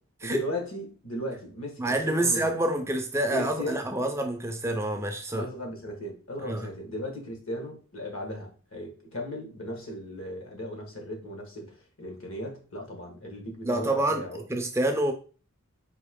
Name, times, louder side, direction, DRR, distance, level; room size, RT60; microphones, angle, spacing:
voice 1, 0.2-2.5 3.3-4.1 5.3-14.4, equal, 70° left, 1.4 m, -37 dB
voice 2, 1.8-5.5 6.4-6.7 13.6-15.1, right 1 dB, 10° right, 0.4 m, -27 dB
4.5 x 2.8 x 3.5 m
head